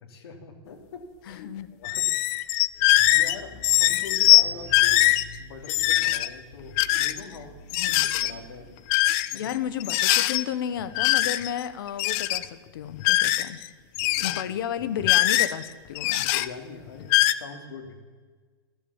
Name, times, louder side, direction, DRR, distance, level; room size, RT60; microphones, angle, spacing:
voice 1, 0.0-1.1 1.3-1.5 1.8-2.5 3.1-5.0 5.4-7.5 7.8-8.8 9.3-9.4 14.2-14.4 16.3-18.0, left 5 dB, 75° left, 3 dB, 3.0 m, -42 dB
voice 2, 1.3-1.7 7.8-8.1 9.3-13.6 14.2-16.3, left 9 dB, 60° left, 13 dB, 1.1 m, -33 dB
sound 1, 1.8-3.4 3.6-4.4 4.7-5.2 5.6-6.3 6.8-7.2 7.7-8.3 8.9-9.5 9.8-10.4 10.9-11.6 11.9-12.4 13.0-13.7 13.9-14.4 15.0-15.6 16.0-16.5 17.0-17.3, left 17 dB, 25° left, 0.4 m, -21 dB
sound 2, 2.8-8.8, left 1 dB, 5° right, 7.0 m, -48 dB
15.5 x 12.5 x 7.3 m, 1.5 s
supercardioid pair, 175°, 13 cm